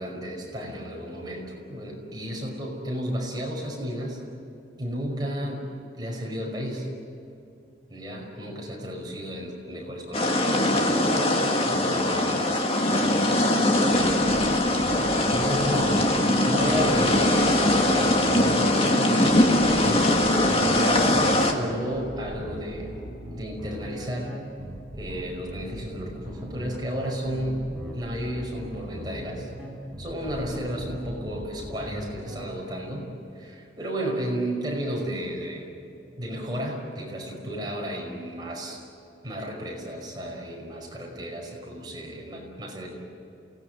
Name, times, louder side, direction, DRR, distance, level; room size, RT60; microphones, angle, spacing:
voice 1, 0.0-4.2 4.8-5.7 6.0-6.9 7.9-14.2 15.2-16.0 16.4-17.6 18.4-19.3 19.7-23.1 23.4-24.4 24.9-27.7 27.9-29.5 30.0-33.1 33.4-35.7 36.2-38.8 39.2-42.9, equal, 25° right, -1 dB, 5.4 m, -33 dB
sound 1, 10.1-21.5, left 1 dB, 30° left, 2.0 m, -21 dB
sound 2, 13.9-32.4, equal, ahead, 7.5 m, -39 dB
28.5 x 19.0 x 9.5 m, 2.7 s
head